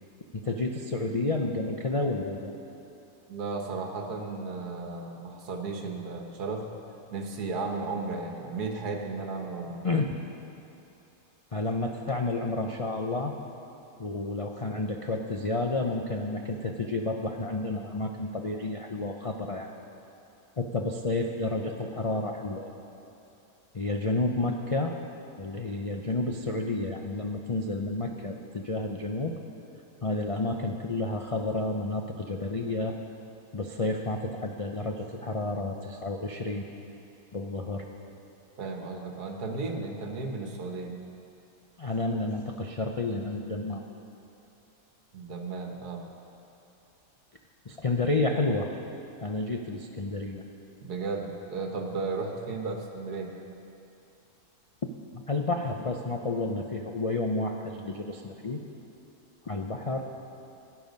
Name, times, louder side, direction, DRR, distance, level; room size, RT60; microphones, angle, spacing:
voice 1, 0.3-2.5 9.8-10.1 11.5-13.3 14.0-19.7 20.6-22.7 23.7-25.0 25.4-29.4 30.0-33.0 33.5-36.6 37.3-37.9 41.8-43.8 47.7-48.7 49.2-50.4 55.3-58.6 59.4-60.1, left 2 dB, 60° left, 2 dB, 0.3 m, -30 dB
voice 2, 3.3-6.6 7.1-9.8 38.6-40.9 45.1-46.0 50.8-53.3, right 3 dB, 85° right, 3 dB, 1.7 m, -34 dB
17.0 x 9.9 x 5.2 m, 2.8 s
omnidirectional pair, 1.6 m